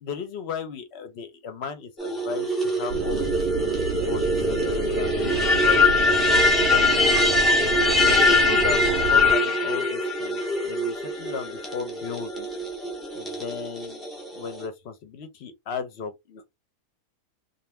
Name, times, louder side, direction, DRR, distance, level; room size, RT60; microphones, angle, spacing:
voice 1, 0.0-5.9 6.6-7.2 7.8-12.5 13.1-14.0 14.3-16.4, left 6 dB, 55° left, 0.8 m, -36 dB
sound 1, 2.0-14.6, left 2 dB, ahead, 0.4 m, -23 dB
sound 2, 2.9-9.3, right 6 dB, 75° right, 0.5 m, -29 dB
2.6 x 2.4 x 3.2 m
omnidirectional pair, 1.6 m